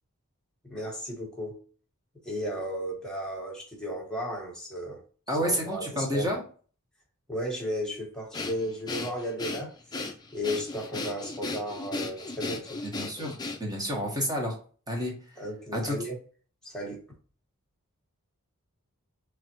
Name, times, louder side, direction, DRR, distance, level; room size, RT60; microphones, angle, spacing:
voice 1, 0.6-1.6 2.2-5.0 5.3-6.3 7.3-10.1 10.3-12.8 15.4-16.2 16.6-17.0, equal, 5° left, -2 dB, 1.1 m, -34 dB
voice 2, 5.3-6.4 12.8-14.6 14.9-15.1 15.7-16.0, equal, 20° right, -1 dB, 1.2 m, -30 dB
Breathing, 8.3-13.9, left 3 dB, 20° left, 0.5 m, -36 dB
3.5 x 3.3 x 2.9 m, 0.40 s
head